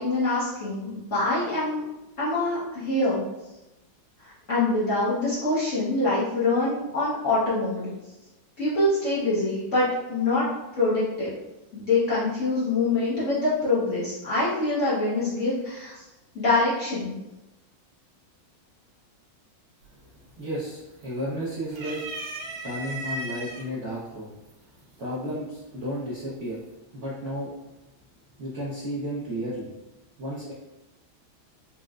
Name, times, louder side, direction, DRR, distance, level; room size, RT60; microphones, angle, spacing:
voice 1, 0.0-1.8 2.2-3.2 4.2-7.9 8.6-10.5 10.7-11.3 11.7-16.0 16.3-17.2, left 2 dB, 55° left, -10 dB, 0.9 m, -25 dB
sound 1, 19.8-20.2 20.6-21.3 21.7-23.6 24.5-24.6 25.8-26.3, right 2 dB, 90° right, 1.5 m, -36 dB
voice 2, 20.4-22.0 22.6-24.3 25.0-26.6 26.9-27.5 28.4-29.7 30.2-30.5, equal, 65° right, -9 dB, 0.7 m, -33 dB
4.3 x 2.0 x 2.4 m, 0.98 s
omnidirectional pair, 2.2 m